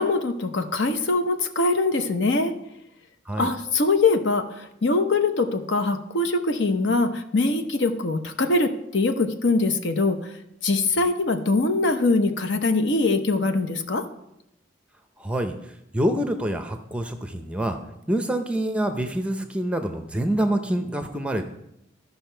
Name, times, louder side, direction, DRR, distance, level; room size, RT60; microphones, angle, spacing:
voice 1, 0.0-2.5 3.4-10.3 10.6-14.1, left 3 dB, 60° left, 8 dB, 0.8 m, -23 dB
voice 2, 15.2-17.8 18.1-21.5, right 1 dB, 5° right, 6 dB, 0.6 m, -26 dB
13.5 x 5.7 x 4.5 m, 0.81 s
head